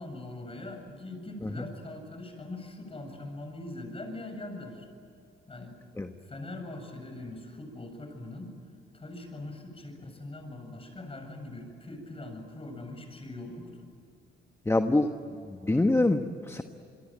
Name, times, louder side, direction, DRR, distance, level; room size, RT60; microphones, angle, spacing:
voice 1, 0.0-4.9 5.5-5.7 6.2-8.5 8.9-13.8, left 2 dB, 30° left, 5 dB, 7.7 m, -42 dB
voice 2, 14.6-15.1 15.5-16.6, left 2 dB, 15° left, 6 dB, 1.3 m, -25 dB
27.5 x 22.5 x 8.9 m, 2.6 s
cardioid pair, 90°, 20 cm